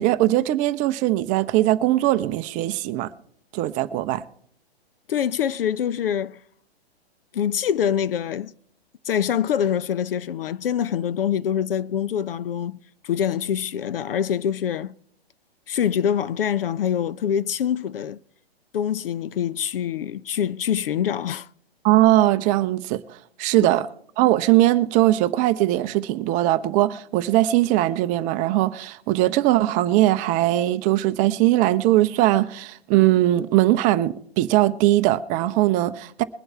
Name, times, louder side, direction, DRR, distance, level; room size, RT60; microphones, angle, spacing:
voice 1, 0.0-3.1 3.5-4.2 21.8-23.9 24.2-36.2, right 15 dB, 25° right, 0.7 m, -20 dB
voice 2, 5.1-6.4 7.3-8.5 9.0-12.8 13.0-14.9 15.7-18.2 18.7-21.5 23.6-23.7, left 9 dB, 60° left, 0.6 m, -25 dB
22.0 x 7.8 x 4.4 m
hypercardioid pair, 120°, 31 cm